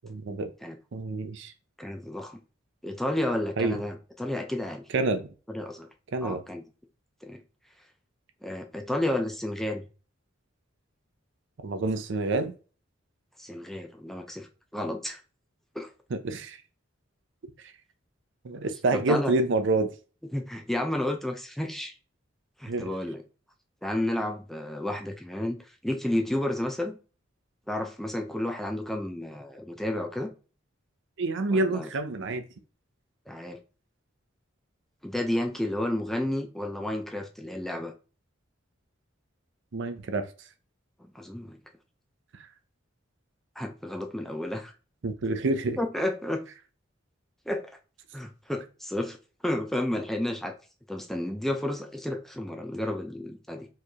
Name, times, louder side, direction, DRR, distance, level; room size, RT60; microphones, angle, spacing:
voice 1, 0.0-0.5 0.9-1.5 3.6-3.8 4.9-5.3 6.1-6.4 11.6-12.5 16.2-16.6 18.4-19.9 22.7-22.9 31.2-32.4 39.7-40.3 45.0-45.8, right 2 dB, 65° right, 0.5 m, -27 dB
voice 2, 1.8-2.4 2.8-4.8 5.5-5.9 6.2-6.6 7.2-7.4 8.4-9.9 13.4-14.5 14.7-15.2 15.7-15.9 18.9-19.3 20.3-21.9 22.6-23.2 23.8-25.6 25.8-27.0 27.7-30.3 31.5-31.9 33.3-33.6 35.0-37.9 41.1-41.6 43.6-44.7 45.8-46.5 47.5-47.7 48.1-49.2 49.4-50.5 50.9-53.7, left 1 dB, ahead, 0.4 m, -31 dB
4.3 x 3.2 x 2.8 m
head